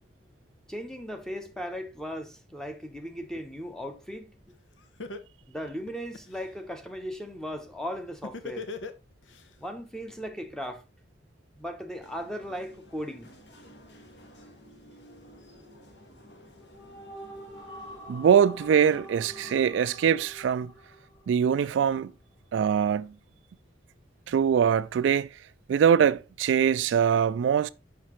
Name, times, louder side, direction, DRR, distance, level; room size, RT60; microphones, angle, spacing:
voice 1, 0.7-4.3 5.5-8.7 9.6-10.8 11.5-13.3, equal, 5° left, 0.8 m, -37 dB
Laughter, 4.5-4.6 5.0-6.5 8.2-9.4, left 3 dB, 90° left, 0.7 m, -38 dB
sound 1, 12.0-19.5, equal, 65° left, 1.4 m, -53 dB
sound 2, 16.5-21.9, right 1 dB, 25° left, 2.7 m, -46 dB
voice 2, 18.1-20.7 21.3-22.1 22.5-23.1 24.3-25.3 25.7-27.7, right 8 dB, 85° right, 0.3 m, -23 dB
5.7 x 5.6 x 3.1 m
head